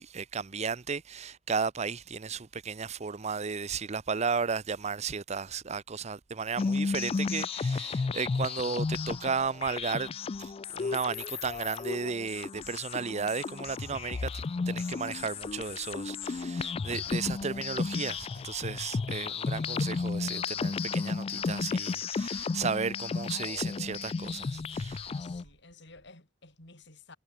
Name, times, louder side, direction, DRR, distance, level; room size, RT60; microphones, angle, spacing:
voice 1, 0.0-10.1 10.4-25.1, right 5 dB, 35° right, 0.7 m, -34 dB
sound 1, 6.6-25.4, left 4 dB, 30° left, 0.3 m, -33 dB
voice 2, 25.2-27.2, left 3 dB, 65° left, 6.6 m, -53 dB
head